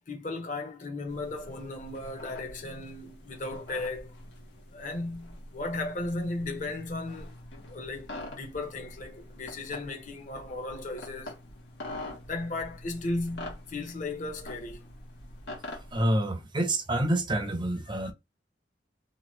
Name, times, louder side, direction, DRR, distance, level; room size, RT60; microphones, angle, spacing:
voice 1, 0.1-4.1 4.7-7.3 7.7-11.4 11.9-12.0 12.3-14.9, left 2 dB, 45° left, 0.9 m, -36 dB
sound 1, 1.1-16.1, left 1 dB, 80° left, 1.1 m, -45 dB
voice 2, 15.9-18.1, right 1 dB, 25° right, 0.6 m, -27 dB
2.8 x 2.3 x 3.0 m
head